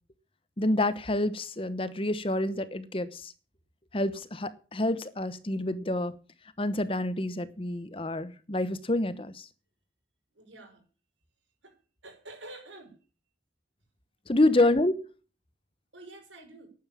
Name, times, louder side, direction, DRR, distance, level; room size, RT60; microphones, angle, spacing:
voice 1, 0.6-3.3 3.9-6.1 6.6-9.4 14.3-14.9, left 1 dB, 30° left, 1.0 m, -28 dB
voice 2, 10.4-10.8 11.6-11.7 12.0-12.9 14.6-14.7 15.9-16.7, right 2 dB, 85° right, 5.5 m, -47 dB
11.0 x 9.3 x 8.5 m
head